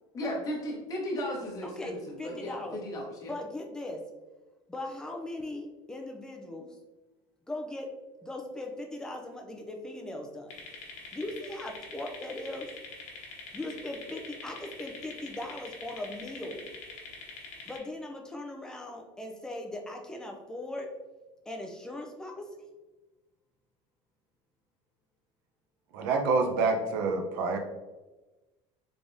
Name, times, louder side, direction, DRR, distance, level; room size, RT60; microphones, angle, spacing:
voice 1, 0.1-3.3, left 1 dB, 25° left, -3 dB, 1.0 m, -35 dB
voice 2, 1.6-2.8 3.2-4.0 4.7-6.8 7.5-7.9 8.2-10.6 11.1-12.7 13.5-16.7 17.7-20.9 21.5-22.7, left 1 dB, 5° left, 2 dB, 0.4 m, -39 dB
sound 1, 10.5-17.8, left 4 dB, 60° left, 1.0 m, -44 dB
voice 3, 25.9-27.6, right 4 dB, 90° right, 4 dB, 0.6 m, -27 dB
3.4 x 3.4 x 2.6 m, 1.1 s
cardioid pair, 150°, 13 cm